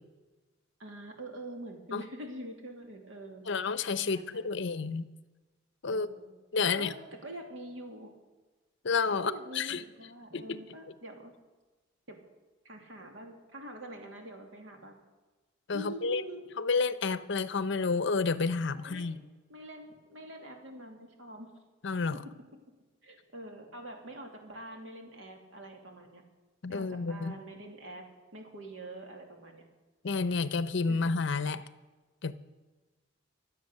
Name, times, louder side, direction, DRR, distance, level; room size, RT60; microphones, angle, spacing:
voice 1, 0.8-3.4 4.0-4.6 5.8-6.3 6.6-7.0 7.2-8.1 9.2-11.3 12.1-12.2 12.6-15.0 15.7-16.5 18.7-21.5 23.0-26.2 26.7-28.0 28.3-29.6 30.9-31.0, right 1 dB, 70° right, 3 dB, 2.6 m, -45 dB
voice 2, 3.5-5.1 5.8-6.1 6.5-6.9 8.8-9.8 10.3-10.6 15.7-16.2 16.6-19.2 21.8-22.2 26.6-27.3 30.0-31.6 32.2-32.3, left 4 dB, 65° left, 14 dB, 0.7 m, -30 dB
23.5 x 7.9 x 6.6 m, 1.2 s
head